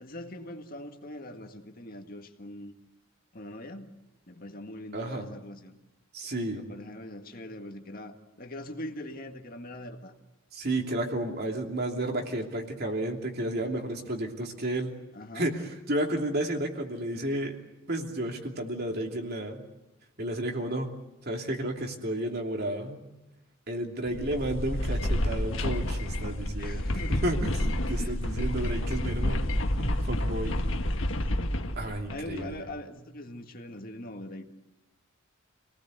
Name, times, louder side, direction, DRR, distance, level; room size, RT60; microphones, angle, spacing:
voice 1, 0.0-2.7 3.3-4.0 4.3-5.7 6.5-10.1 15.1-15.5 26.6-27.3 28.0-28.3 28.8-29.1 29.4-29.6 30.6-31.6 32.1-34.5, left 1 dB, 45° left, 4 dB, 1.9 m, -42 dB
voice 2, 4.9-5.2 6.1-6.6 10.5-14.9 15.3-17.6 17.9-19.6 20.2-20.9 21.3-23.0 23.7-27.5 27.9-29.4 29.8-30.6 31.8-32.7, right 1 dB, 50° right, 2 dB, 3.0 m, -32 dB
sound 1, 24.1-32.6, left 1 dB, 65° left, 1.6 m, -29 dB
28.5 x 19.0 x 8.1 m, 1.0 s
head